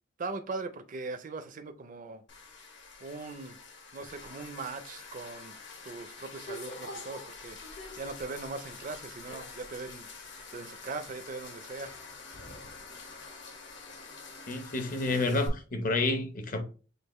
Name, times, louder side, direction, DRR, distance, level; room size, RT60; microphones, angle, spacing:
voice 1, 0.2-2.2 3.0-3.6 3.9-5.6 5.8-7.6 8.0-10.1 10.5-11.9, right 3 dB, 40° right, 0.5 m, -40 dB
sound 1, 2.3-15.5, left 3 dB, 65° left, 1.3 m, -46 dB
voice 2, 14.5-16.6, left 2 dB, 45° left, 0.8 m, -29 dB
6.5 x 2.5 x 3.0 m
head